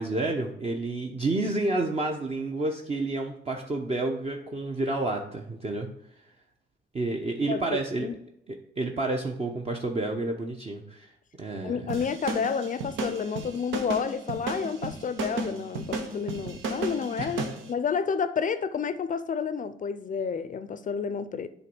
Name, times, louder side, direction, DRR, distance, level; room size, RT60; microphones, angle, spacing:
voice 1, 0.0-5.9 6.9-8.1 8.8-11.1 11.4-11.9 17.2-17.3, right 2 dB, 30° right, 0.8 m, -29 dB
voice 2, 7.5-8.2 11.6-17.4 17.7-21.5, left 6 dB, 40° left, 0.5 m, -30 dB
sound 1, 11.9-17.6, right 3 dB, 80° right, 1.1 m, -33 dB
8.1 x 3.1 x 6.1 m
cardioid pair, 90°, 20 cm